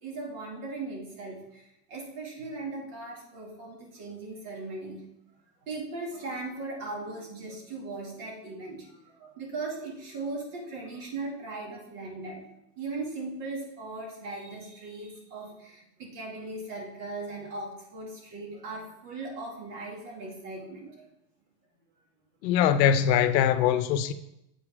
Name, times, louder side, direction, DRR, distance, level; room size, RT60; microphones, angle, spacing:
voice 1, 0.0-5.0 5.7-12.5 12.8-21.1, right 3 dB, 60° right, 2.4 m, -38 dB
voice 2, 22.4-24.1, left 9 dB, 80° left, 0.7 m, -22 dB
7.8 x 4.9 x 3.6 m
supercardioid pair, 130°, 50 cm